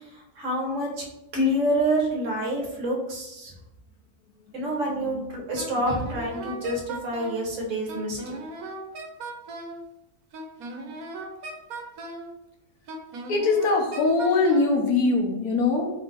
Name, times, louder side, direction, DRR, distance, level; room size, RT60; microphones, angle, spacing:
voice 1, 0.4-0.9 1.3-3.5 4.5-8.2, equal, 60° right, 0 dB, 1.3 m, -27 dB
Wind instrument woodwind instrument, 5.6-7.4 7.9-9.8 10.3-12.3 12.9-14.7, right 2 dB, 85° right, 1.2 m, -37 dB
voice 2, 13.3-15.9, left 3 dB, 80° left, 2 dB, 1.2 m, -22 dB
4.3 x 2.6 x 3.7 m, 0.91 s
omnidirectional pair, 1.5 m